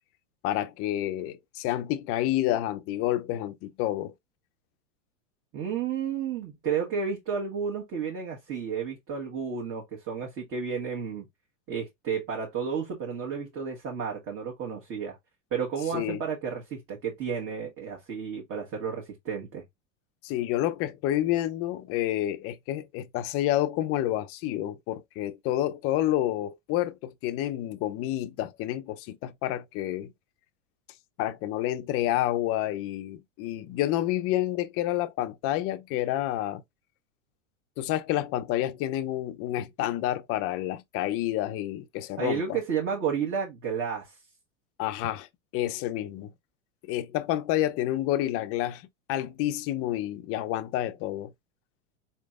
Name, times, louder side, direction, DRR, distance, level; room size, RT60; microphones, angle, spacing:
voice 1, 0.4-4.1 15.9-16.2 20.2-30.1 31.2-36.6 37.8-42.6 44.8-45.3 45.5-46.3 46.9-48.8 49.1-51.3, left 13 dB, 35° left, 0.6 m, -29 dB
voice 2, 5.5-11.3 11.7-15.2 15.5-19.6 42.2-44.2, right 6 dB, 35° right, 1.4 m, -32 dB
4.4 x 3.3 x 2.4 m
supercardioid pair, 130°, 39 cm